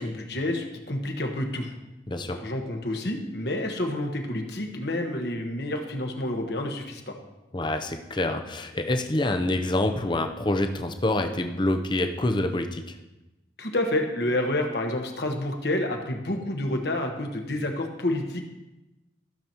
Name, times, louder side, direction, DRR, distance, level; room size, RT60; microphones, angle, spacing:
voice 1, 0.0-1.7 2.3-7.1 13.6-18.4, left 1 dB, 60° left, 3 dB, 1.3 m, -29 dB
voice 2, 2.1-2.4 7.5-13.0, left 1 dB, 25° left, 6 dB, 0.6 m, -26 dB
15.0 x 6.9 x 3.0 m, 1.0 s
head